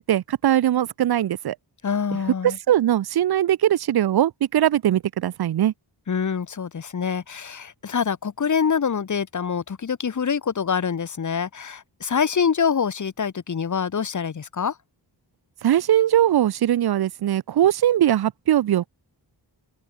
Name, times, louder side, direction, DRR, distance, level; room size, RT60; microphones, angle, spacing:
voice 1, 0.1-1.6 2.4-5.7 15.6-18.9, right 11 dB, 60° right, 0.5 m, -20 dB
voice 2, 1.8-2.6 6.1-14.8, left 6 dB, 40° left, 1.0 m, -25 dB
wide cardioid pair, 115°, 44 cm